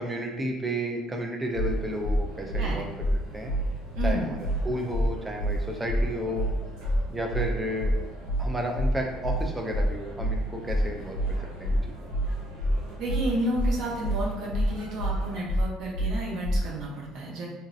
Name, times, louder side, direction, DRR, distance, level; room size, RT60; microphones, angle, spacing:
voice 1, 0.0-2.9 3.3-3.5 4.0-6.5 7.1-7.9 8.4-11.2 11.6-12.1, equal, 10° right, 1 dB, 0.3 m, -32 dB
sound 1, 1.5-1.7 2.0-2.2 2.5-2.7 3.0-3.1 3.5-3.6 3.9-4.1 4.4-4.6 4.9-5.1 5.4-5.5 5.9-6.0 6.3-6.5 6.8-7.0 7.3-7.5 7.8-7.9 8.3-8.4 8.7-8.9 9.2-9.4 9.7-9.9 10.2-10.3 10.7-10.8 11.1-11.3 11.6-11.8 12.1-12.3 12.6-12.7 13.1-13.2 13.5-13.7 14.0-14.2 14.5-14.7 15.0-15.1 15.5-15.6 15.9-16.1 16.4-16.6, equal, 55° left, 0.6 m, -26 dB
sound 2, 1.5-15.4, right 2 dB, 90° right, 1.0 m, -45 dB
voice 2, 4.0-4.3 13.0-17.5, right 1 dB, 55° right, -3 dB, 0.7 m, -31 dB
2.9 x 2.6 x 2.5 m, 1.0 s
cardioid pair, 160°, 0 cm